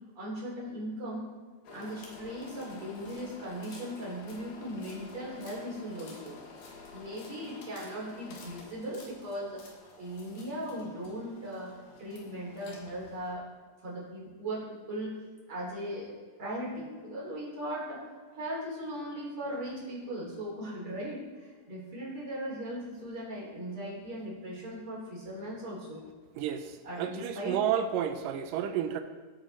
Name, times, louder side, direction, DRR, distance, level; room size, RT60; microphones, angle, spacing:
voice 1, 0.2-1.3 1.7-6.4 6.9-9.6 10.0-11.7 12.0-13.4 13.8-15.1 15.5-18.0 18.3-26.0 26.8-27.6, equal, 40° right, -5 dB, 4.6 m, -38 dB
sound 1, 1.6-13.3, left 4 dB, 75° left, 3.4 m, -50 dB
voice 2, 26.4-29.0, right 9 dB, 90° right, 8 dB, 2.4 m, -31 dB
15.0 x 8.8 x 4.5 m, 1.5 s
omnidirectional pair, 3.8 m